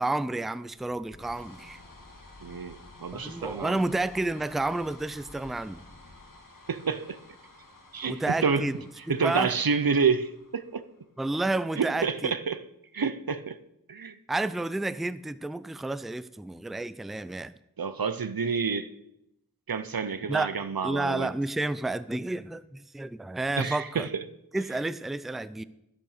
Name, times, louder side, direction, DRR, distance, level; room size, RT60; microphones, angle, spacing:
voice 1, 0.0-1.8 3.1-5.8 8.0-8.7 9.1-9.5 11.2-12.3 14.3-17.5 20.3-20.5 20.8-24.1 24.5-25.6, right 2 dB, ahead, 16 dB, 0.4 m, -30 dB
sound 1, 0.7-11.2, left 2 dB, 60° left, 1.8 m, -51 dB
voice 2, 2.4-3.8 6.7-7.2 7.9-8.7 9.1-10.8 11.8-12.6 12.9-13.6 13.9-14.2 17.8-18.9 19.7-21.3 23.6-24.2, right 5 dB, 75° right, 13 dB, 0.7 m, -28 dB
12.0 x 6.5 x 6.6 m, 0.84 s
wide cardioid pair, 40°, 36 cm